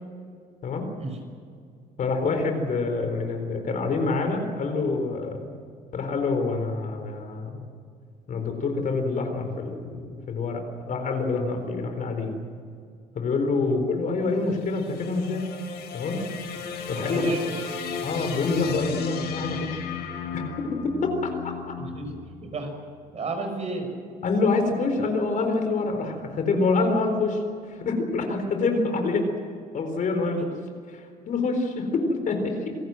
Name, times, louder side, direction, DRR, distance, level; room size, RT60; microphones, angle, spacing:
voice 1, 2.0-5.5 5.9-7.6 8.3-12.3 13.1-15.5 15.9-16.2 16.9-17.2 18.0-19.8 20.3-21.5 24.2-27.4 27.7-29.3 29.7-30.4 30.9-32.8, left 3 dB, 50° left, 5 dB, 4.2 m, -26 dB
sound 1, 14.3-22.6, left 6 dB, 80° left, 4.6 m, -35 dB
voice 2, 17.0-17.6 21.8-22.1 22.4-22.7 23.1-23.9 30.2-30.4, right 3 dB, 40° right, 5 dB, 5.7 m, -33 dB
27.5 x 17.5 x 7.7 m, 2.2 s
cardioid pair, 110°, 17 cm